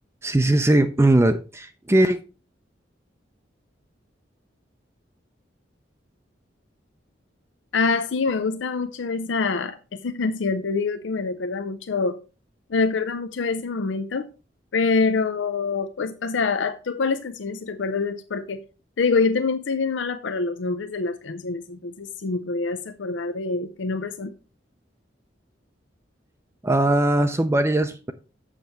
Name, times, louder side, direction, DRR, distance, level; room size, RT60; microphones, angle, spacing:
voice 1, 0.2-2.2 26.6-28.1, right 1 dB, 15° right, 0.5 m, -20 dB
voice 2, 7.7-12.2 12.7-14.3 14.7-18.6 19.0-24.3, left 4 dB, 85° left, 0.5 m, -25 dB
7.4 x 6.7 x 4.5 m
head